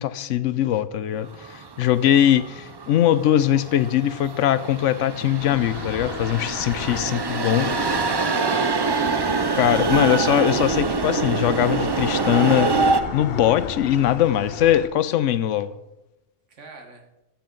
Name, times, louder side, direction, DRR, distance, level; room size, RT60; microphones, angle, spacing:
voice 1, 0.0-7.7 9.6-15.7, left 11 dB, 90° left, 0.9 m, -21 dB
sound 1, 1.3-13.0, right 4 dB, 40° right, 0.3 m, -25 dB
sound 2, 5.4-14.9, left 7 dB, 60° left, 0.8 m, -35 dB
voice 2, 7.4-9.0 16.5-17.0, right 3 dB, 80° right, 1.7 m, -42 dB
14.0 x 7.5 x 3.9 m
omnidirectional pair, 1.2 m